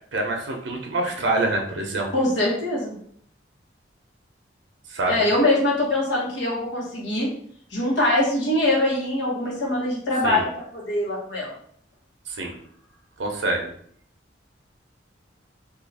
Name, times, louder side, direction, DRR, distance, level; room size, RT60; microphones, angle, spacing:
voice 1, 0.1-2.1 4.9-5.2 10.2-10.5 12.3-12.6 13.2-13.7, right 2 dB, 85° right, 1 dB, 0.6 m, -26 dB
voice 2, 2.1-3.0 5.1-7.3 7.7-11.5, left 1 dB, 80° left, -3 dB, 1.2 m, -23 dB
2.7 x 2.4 x 4.0 m, 0.62 s
head